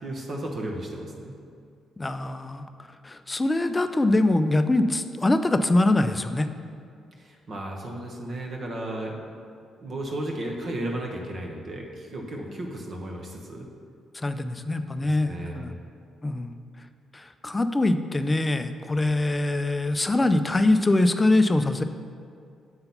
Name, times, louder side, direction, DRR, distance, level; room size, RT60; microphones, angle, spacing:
voice 1, 0.0-1.3 7.2-9.4 9.8-13.7 14.9-15.7, right 1 dB, 50° right, 0 dB, 1.2 m, -34 dB
voice 2, 2.0-2.7 3.0-6.5 14.1-15.8 16.2-16.6 17.1-21.8, left 2 dB, 20° left, 9 dB, 0.4 m, -23 dB
7.9 x 3.9 x 5.7 m, 2.3 s
cardioid pair, 90°, 0 cm